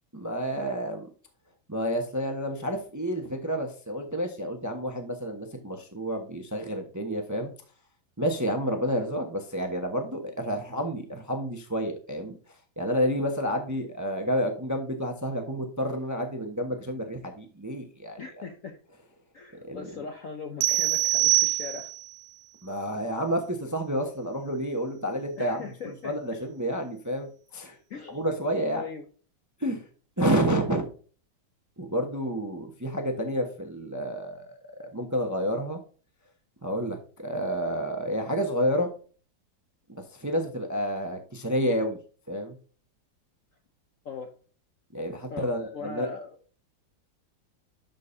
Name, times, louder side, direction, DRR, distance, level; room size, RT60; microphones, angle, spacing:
voice 1, 0.1-1.1 1.7-7.5 8.2-12.4 12.8-18.2 19.6-20.0 22.6-27.8 28.1-28.8 29.6-29.8 30.2-30.8 31.8-35.8 36.6-38.9 39.9-42.0 42.3-42.5 44.9-46.1, equal, 15° right, 4 dB, 0.7 m, -30 dB
voice 2, 18.2-18.8 19.3-21.9 25.4-26.4 27.9-28.2 28.7-29.1 44.0-44.3 45.3-46.4, left 5 dB, 55° left, 5 dB, 0.9 m, -39 dB
sound 1, 20.6-22.1, right 18 dB, 80° right, 1.5 m, -24 dB
11.5 x 5.2 x 2.7 m, 0.39 s
omnidirectional pair, 2.2 m